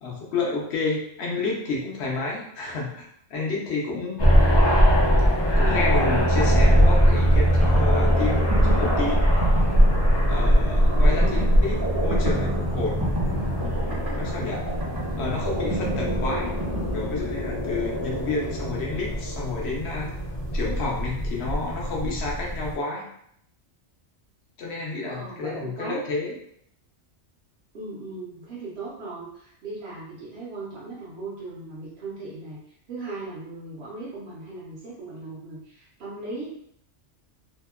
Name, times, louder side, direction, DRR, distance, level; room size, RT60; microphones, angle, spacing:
voice 1, 0.0-3.1 3.3-4.3 5.6-9.2 10.3-13.1 13.6-14.6 15.2-16.5 16.9-20.1 20.5-23.0 24.6-26.3, left 3 dB, 65° left, -2 dB, 0.9 m, -30 dB
sound 1, 4.2-22.8, equal, 45° left, 0.3 m, -22 dB
sound 2, 7.3-17.8, right 2 dB, 25° right, 0.6 m, -32 dB
voice 2, 25.1-26.0 27.7-36.5, right 3 dB, 65° right, -7 dB, 0.9 m, -38 dB
2.8 x 2.1 x 2.2 m, 0.71 s
omnidirectional pair, 1.2 m